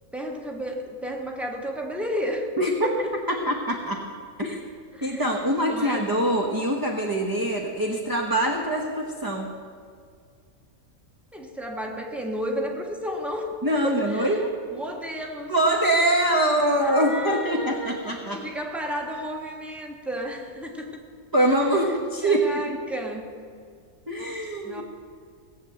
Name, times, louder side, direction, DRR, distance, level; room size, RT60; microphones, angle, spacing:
voice 1, 0.1-2.5 2.8-3.1 4.9-6.1 11.3-13.5 13.8-15.5 16.8-21.0 21.4-21.9 22.2-23.3 24.6-24.8, equal, ahead, 1 dB, 1.4 m, -33 dB
voice 2, 2.6-2.9 3.3-4.0 4.4-4.6 5.0-9.5 13.6-14.5 15.5-18.4 21.3-22.8 24.1-24.8, right 1 dB, 15° right, 0 dB, 0.9 m, -24 dB
17.0 x 7.6 x 7.8 m, 2.1 s
omnidirectional pair, 1.5 m